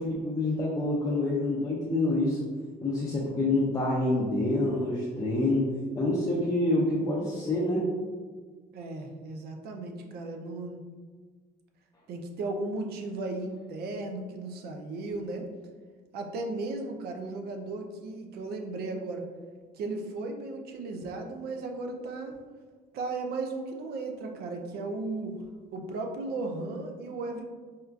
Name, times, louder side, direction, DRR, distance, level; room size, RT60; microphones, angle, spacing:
voice 1, 0.0-2.4 2.8-5.7 6.0-7.9, left 2 dB, 20° left, -5 dB, 0.5 m, -27 dB
voice 2, 8.7-10.8 12.1-15.5 16.1-19.3 19.7-22.4 22.9-25.4 25.7-27.4, right 2 dB, 70° right, 3 dB, 0.5 m, -35 dB
4.3 x 2.4 x 2.3 m, 1.5 s
cardioid pair, 110°, 17 cm